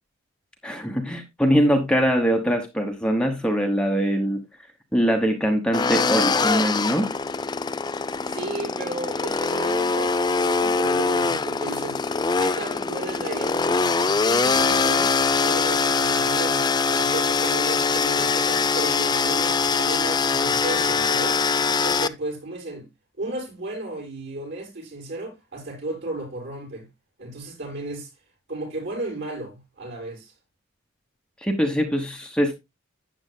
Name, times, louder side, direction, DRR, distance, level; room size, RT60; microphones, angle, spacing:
voice 1, 0.6-4.4 4.9-7.1 31.4-32.5, equal, 5° left, 1.2 m, -22 dB
sound 1, 5.7-22.1, left 4 dB, 20° left, 0.4 m, -23 dB
voice 2, 8.2-12.0 12.4-16.7 16.9-21.4 21.8-22.9 23.2-26.9 27.2-28.1 28.5-30.3, right 2 dB, 55° right, 6.5 m, -34 dB
12.5 x 8.9 x 2.2 m
head